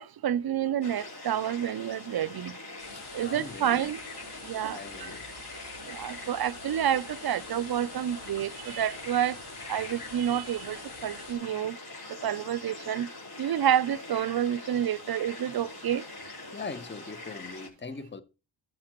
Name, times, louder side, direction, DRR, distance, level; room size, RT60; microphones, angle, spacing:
voice 1, 0.0-2.6 3.1-4.0 4.4-5.2 5.8-9.4 9.7-11.8 12.2-13.1 13.4-16.1, right 10 dB, 50° right, 0.5 m, -29 dB
sound 1, 0.8-17.7, left 2 dB, 50° left, 4.5 m, -43 dB
sound 2, 2.8-11.3, left 3 dB, 85° left, 3.8 m, -47 dB
voice 2, 2.9-3.8 4.7-5.3 16.5-18.2, left 4 dB, 20° left, 1.0 m, -41 dB
13.0 x 7.3 x 3.0 m
cardioid pair, 55°, 48 cm